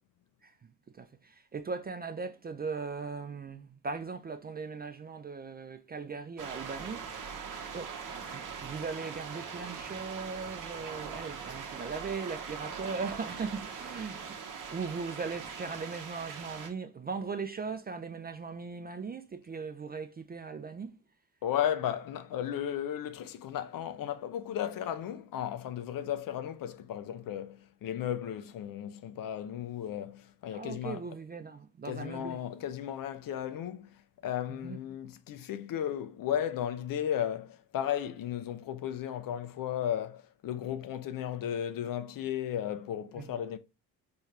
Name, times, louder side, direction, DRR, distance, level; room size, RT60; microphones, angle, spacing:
voice 1, 0.4-7.4 7.7-7.9 8.3-20.9 30.5-32.4 34.5-34.8 43.2-43.3, right 4 dB, 25° right, 0.4 m, -39 dB
sound 1, 6.4-16.7, right 6 dB, 45° right, 0.9 m, -41 dB
voice 2, 21.4-31.0 31.8-43.6, left 10 dB, 55° left, 0.5 m, -35 dB
4.3 x 2.3 x 3.2 m
supercardioid pair, 65°, 42 cm